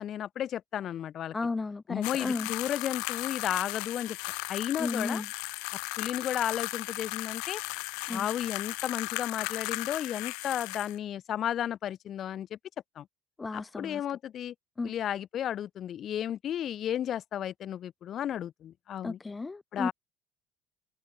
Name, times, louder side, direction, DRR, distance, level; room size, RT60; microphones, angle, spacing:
voice 1, 0.0-1.4 1.9-4.2 4.5-5.2 6.0-7.6 8.1-12.6 12.9-13.1 13.5-14.5 14.8-19.2 19.7-19.9, left 10 dB, 40° left, 6.8 m, -33 dB
voice 2, 1.3-2.5 4.8-5.3 8.1-8.3 13.4-14.0 14.8-14.9 19.0-19.9, left 3 dB, 15° left, 1.3 m, -34 dB
sound 1, 2.0-11.0, left 35 dB, 90° left, 1.6 m, -36 dB
cardioid pair, 155°, 0 cm